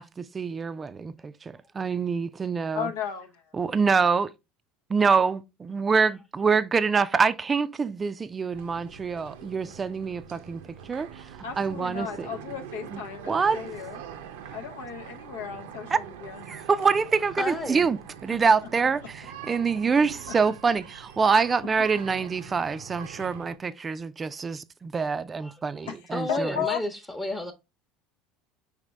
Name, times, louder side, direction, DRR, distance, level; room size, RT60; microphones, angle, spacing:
voice 1, 0.0-2.9 3.5-4.3 4.9-12.3 12.9-13.0 13.3-13.6 15.9-16.0 16.5-26.6, right 5 dB, 25° right, 0.4 m, -26 dB
voice 2, 2.7-3.4 11.4-14.0 14.5-16.4 21.3-21.4 25.9-26.0 26.3-26.8, left 8 dB, 80° left, 0.6 m, -34 dB
sound 1, 8.5-23.6, right 9 dB, 80° right, 0.6 m, -43 dB
voice 3, 17.4-17.8 25.4-25.5 26.1-27.5, left 1 dB, 15° left, 0.8 m, -31 dB
5.0 x 3.3 x 3.2 m
hypercardioid pair, 85°, 0 cm